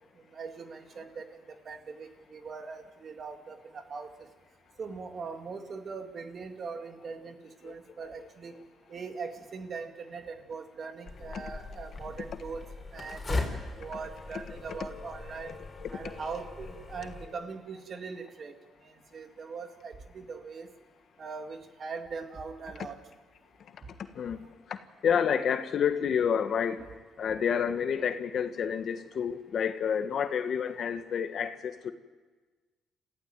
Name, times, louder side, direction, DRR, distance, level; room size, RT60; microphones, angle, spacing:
voice 1, 0.3-4.3 4.8-8.5 8.9-12.7 12.9-13.4 13.8-15.6 15.9-18.5 18.8-20.7 21.2-23.0, right 5 dB, 50° right, 6 dB, 2.2 m, -41 dB
voice 2, 8.0-8.6 11.3-11.4 14.7-15.0 15.4-16.4 17.0-17.1 23.6-23.8 24.1-26.9 27.2-31.9, left 7 dB, 60° left, 9 dB, 1.5 m, -30 dB
sound 1, 11.1-17.3, left 3 dB, 25° left, 4.8 m, -39 dB
28.0 x 15.0 x 9.1 m, 1.4 s
cardioid pair, 90°, 0 cm